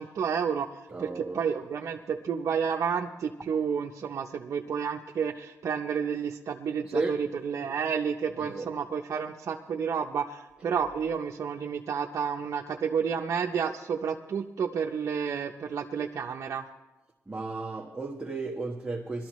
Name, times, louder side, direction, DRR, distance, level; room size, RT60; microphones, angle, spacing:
voice 1, 0.0-16.7, right 6 dB, 60° right, 1 dB, 0.7 m, -30 dB
voice 2, 0.9-1.4 6.8-7.2 8.4-8.7 17.3-19.3, right 3 dB, 15° right, -1 dB, 1.2 m, -34 dB
21.5 x 12.5 x 3.1 m, 1.1 s
wide cardioid pair, 125°, 6 cm